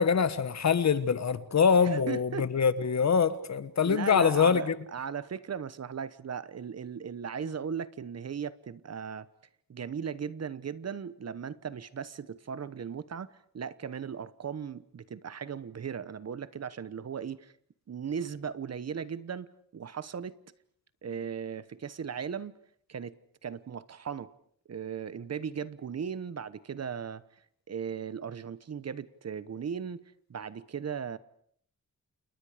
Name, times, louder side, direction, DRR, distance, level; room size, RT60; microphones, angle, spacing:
voice 1, 0.0-4.7, left 6 dB, 55° left, 1.4 m, -24 dB
voice 2, 1.8-2.5 3.8-9.3 9.7-13.3 13.5-17.5 17.9-19.5 19.7-20.4 21.0-22.5 22.9-23.2 23.4-24.3 24.7-27.2 27.7-30.0 30.3-31.2, right 7 dB, 50° right, 1.0 m, -37 dB
29.5 x 29.0 x 5.0 m
wide cardioid pair, 135°, 34 cm